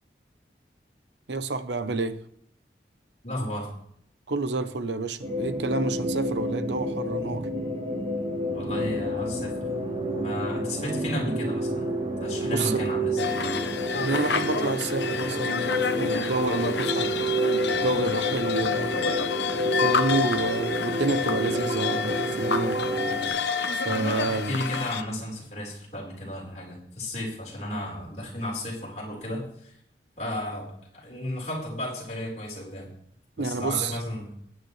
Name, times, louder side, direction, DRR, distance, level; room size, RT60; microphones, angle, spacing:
voice 1, 1.3-2.2 4.3-7.5 12.4-12.9 13.9-17.1 17.7-19.0 19.6-22.8 23.7-24.6 33.4-34.0, right 3 dB, 85° right, 12 dB, 0.9 m, -29 dB
voice 2, 3.2-3.7 8.5-9.5 10.1-11.9 12.2-13.4 23.9-29.7 30.2-32.9 33.4-34.3, left 1 dB, 40° left, -3 dB, 4.4 m, -33 dB
sound 1, 5.2-23.3, equal, 30° right, 4.1 m, -29 dB
sound 2, 13.2-25.0, left 6 dB, 80° left, 0.9 m, -29 dB
19.5 x 9.5 x 3.3 m, 0.68 s
head